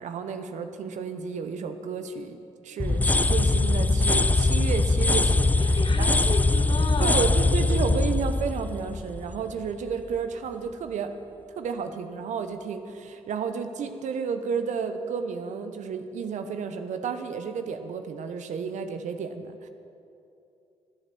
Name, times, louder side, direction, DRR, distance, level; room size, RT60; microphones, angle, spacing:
voice 1, 0.0-2.4 2.6-6.2 7.0-11.1 11.5-19.7, right 6 dB, 70° right, 8 dB, 0.9 m, -32 dB
sound 1, 2.8-9.7, left 2 dB, 10° left, 0.4 m, -22 dB
voice 2, 5.6-7.3, left 3 dB, 40° left, 6 dB, 1.3 m, -33 dB
12.5 x 8.6 x 7.0 m, 2.7 s
supercardioid pair, 55°, 13 cm